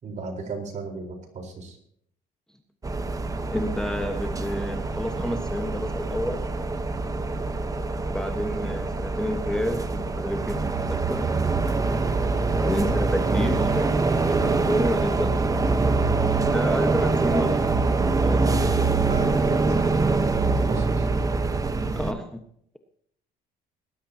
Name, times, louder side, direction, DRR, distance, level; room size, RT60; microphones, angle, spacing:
voice 1, 0.0-1.8 12.3-12.6 18.4-18.6 19.0-21.1, right 3 dB, 45° right, 3 dB, 4.3 m, -35 dB
sound 1, 2.8-22.1, right 3 dB, 20° right, 1.2 m, -24 dB
voice 2, 3.5-6.4 8.1-11.3 12.6-15.9 16.5-17.8 18.2-18.4 21.9-22.4, equal, 5° left, 5 dB, 1.4 m, -30 dB
19.5 x 12.0 x 2.9 m, 0.67 s
cardioid pair, 110°, 17 cm